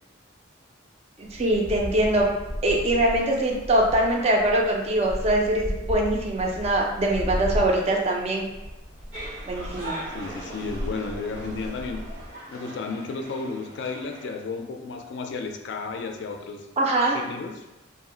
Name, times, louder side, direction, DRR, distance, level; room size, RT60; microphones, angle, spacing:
sound 1, 1.2-12.3, equal, 20° left, 0.6 m, -35 dB
voice 1, 1.2-2.3 2.6-8.4 9.4-10.0 16.8-17.2, right 1 dB, 30° right, 0 dB, 0.4 m, -23 dB
sound 2, 9.1-14.3, right 1 dB, 75° right, 1.2 m, -40 dB
voice 2, 10.1-12.1 12.5-16.7 17.1-17.6, left 4 dB, 60° left, 4 dB, 0.3 m, -33 dB
2.6 x 2.0 x 3.7 m, 1.0 s
head